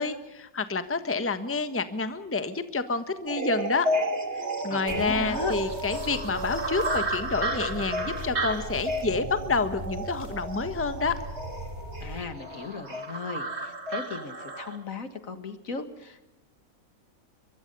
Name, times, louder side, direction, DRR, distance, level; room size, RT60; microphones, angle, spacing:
voice 1, 0.0-3.9 4.6-11.1, left 4 dB, 10° left, 10 dB, 1.2 m, -28 dB
sound 1, 3.3-14.8, right 1 dB, 45° right, 3.1 m, -32 dB
voice 2, 4.6-5.6 12.0-16.2, left 4 dB, 60° left, 10 dB, 2.1 m, -36 dB
sound 2, 4.9-12.3, right 1 dB, 30° right, 2.9 m, -39 dB
24.0 x 23.0 x 5.4 m, 0.94 s
omnidirectional pair, 1.6 m